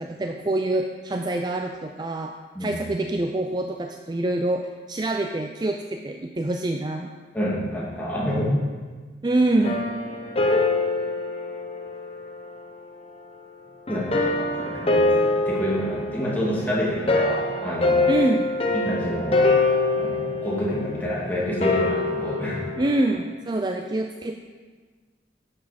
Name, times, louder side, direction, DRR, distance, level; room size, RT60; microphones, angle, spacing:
voice 1, 0.0-2.3 2.6-7.1 9.2-9.8 18.1-18.5 22.8-24.4, right 2 dB, 25° right, 4 dB, 0.4 m, -25 dB
voice 2, 7.3-8.6 13.9-18.1 18.7-22.7, equal, 10° left, -7 dB, 2.6 m, -28 dB
sound 1, 9.6-12.5 13.9-23.1, left 2 dB, 30° left, 1.0 m, -24 dB
11.0 x 7.3 x 5.2 m, 1.5 s
head